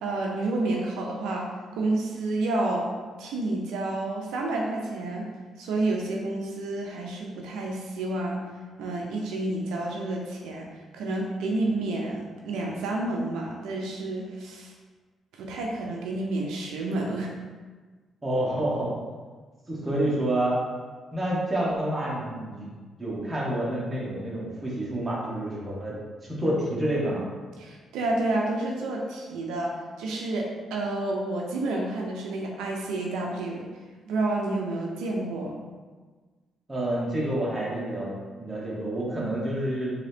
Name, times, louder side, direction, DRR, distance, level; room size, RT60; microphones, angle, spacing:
voice 1, 0.0-1.5 1.8-2.9 3.2-5.3 5.6-8.4 8.8-10.7 10.9-14.7 15.3-17.3 27.6-33.7 34.1-35.6, right 2 dB, 90° right, 0 dB, 0.5 m, -29 dB
voice 2, 18.2-18.9 19.7-20.6 21.1-22.7 23.0-25.9 26.4-27.2 36.7-38.1 38.4-39.9, right 1 dB, 15° right, -6 dB, 1.3 m, -28 dB
3.8 x 2.8 x 3.4 m, 1.4 s
cardioid pair, 90°, 0 cm